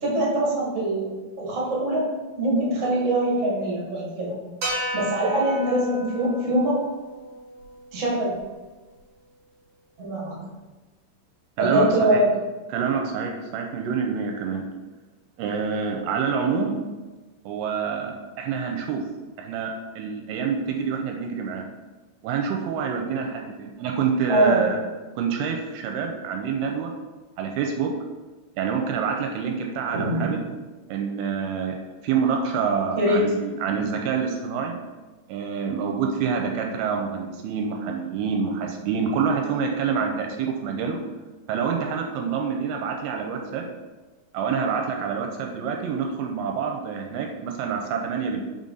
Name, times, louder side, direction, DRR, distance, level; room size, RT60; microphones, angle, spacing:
voice 1, 0.0-2.1 2.4-4.3 4.9-6.9 7.9-8.3 10.0-10.5 11.6-12.3 24.3-24.6 29.9-30.3 33.0-33.2, right 1 dB, 40° right, -6 dB, 1.1 m, -23 dB
sound 1, 4.6-9.0, right 1 dB, 65° right, 1.2 m, -34 dB
voice 2, 11.6-12.2 12.7-14.6 15.4-16.8 17.5-19.0 19.4-21.7 22.2-24.8 25.2-26.9 27.4-27.9 28.6-30.4 30.9-31.8 32.0-34.7 35.3-41.0 41.5-43.7 44.3-48.4, right 6 dB, 85° right, 2 dB, 2.4 m, -27 dB
5.3 x 5.1 x 3.8 m, 1.2 s
omnidirectional pair, 4.7 m